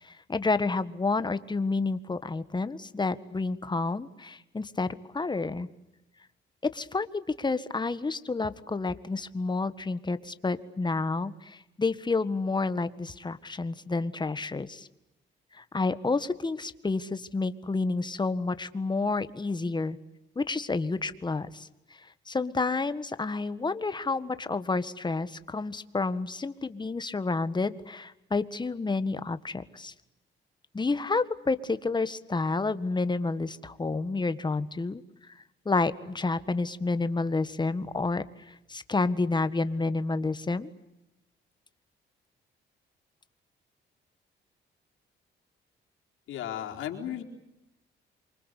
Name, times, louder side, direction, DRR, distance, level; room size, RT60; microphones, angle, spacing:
voice 1, 0.0-5.7 6.6-14.9 15.5-20.0 20.4-21.7 22.3-29.9 30.7-35.0 35.7-40.7, left 3 dB, 20° left, 13 dB, 1.7 m, -30 dB
voice 2, 46.3-47.2, left 10 dB, 80° left, 2 dB, 4.4 m, -35 dB
27.5 x 25.0 x 8.4 m, 0.91 s
cardioid pair, 90°, 20 cm